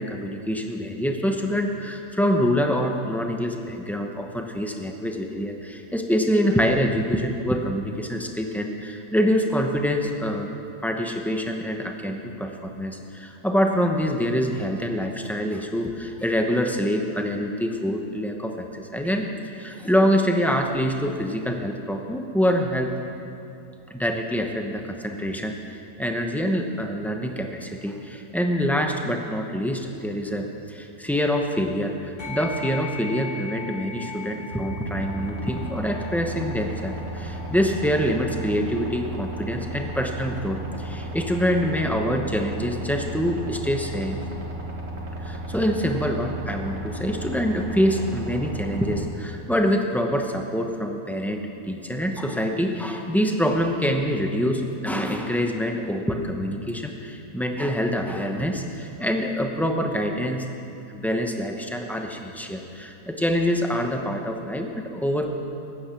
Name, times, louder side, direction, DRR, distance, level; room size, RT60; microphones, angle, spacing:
voice 1, 0.0-10.5 10.8-19.3 19.5-22.9 23.9-44.2 45.2-51.4 51.7-60.5 60.9-65.3, equal, ahead, 3 dB, 0.4 m, -25 dB
sound 1, 32.2-41.9, left 5 dB, 40° left, 1.2 m, -41 dB
sound 2, 34.5-49.0, right 1 dB, 45° right, 2.1 m, -34 dB
14.5 x 9.9 x 5.8 m, 3.0 s
omnidirectional pair, 1.7 m